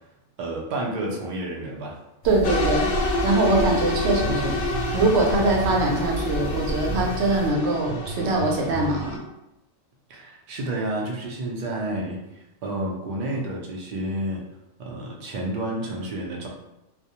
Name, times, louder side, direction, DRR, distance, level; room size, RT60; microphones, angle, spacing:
voice 1, 0.4-2.0 3.5-3.7 10.1-14.4 14.8-16.5, right 1 dB, 90° right, -1 dB, 0.4 m, -30 dB
sound 1, 2.2-7.5, equal, 65° left, 0.8 m, -32 dB
voice 2, 2.2-2.9 3.2-4.6 4.9-9.2, right 2 dB, 65° right, -1 dB, 0.7 m, -23 dB
sound 2, 2.4-9.2, left 2 dB, 90° left, 1.0 m, -28 dB
sound 3, 3.7-9.0, right 4 dB, 10° left, 0.4 m, -37 dB
2.3 x 2.1 x 2.7 m, 0.91 s
omnidirectional pair, 1.4 m